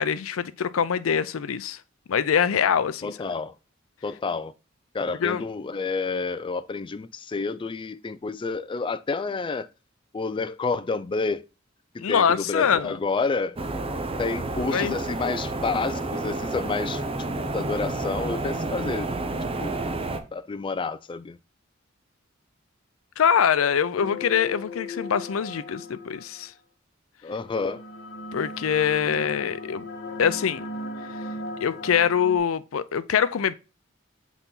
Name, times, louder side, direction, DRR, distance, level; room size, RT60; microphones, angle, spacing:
voice 1, 0.0-1.8 2.1-3.2 5.2-5.5 12.0-12.9 14.7-15.0 23.2-26.5 28.3-29.8 30.2-30.6 31.6-33.5, left 7 dB, 85° left, 0.5 m, -24 dB
voice 2, 3.0-3.5 4.0-4.5 4.9-9.7 10.1-11.4 11.9-13.6 14.2-19.1 19.6-19.9 20.3-21.4 27.2-27.8, left 4 dB, 25° left, 0.3 m, -29 dB
sound 1, 13.6-20.2, right 2 dB, 30° right, 0.7 m, -30 dB
sound 2, 24.0-26.5 27.4-32.4, left 2 dB, 55° left, 1.0 m, -37 dB
6.0 x 4.1 x 3.8 m
head